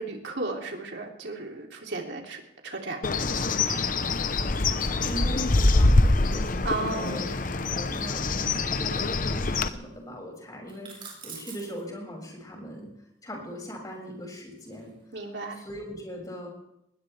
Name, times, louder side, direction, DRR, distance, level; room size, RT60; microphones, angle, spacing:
voice 1, 0.0-3.1 6.6-7.3 15.1-15.6, right 3 dB, 75° right, 1 dB, 3.1 m, -34 dB
Bird, 3.0-9.7, left 2 dB, 50° left, 0.9 m, -24 dB
voice 2, 4.8-7.3 7.7-12.9 13.2-15.2 15.6-16.5, equal, 20° left, -1 dB, 6.5 m, -40 dB
sound 1, 10.7-11.8 13.6-15.2, right 5 dB, 30° right, 7.2 m, -45 dB
20.5 x 20.5 x 3.5 m, 0.79 s
head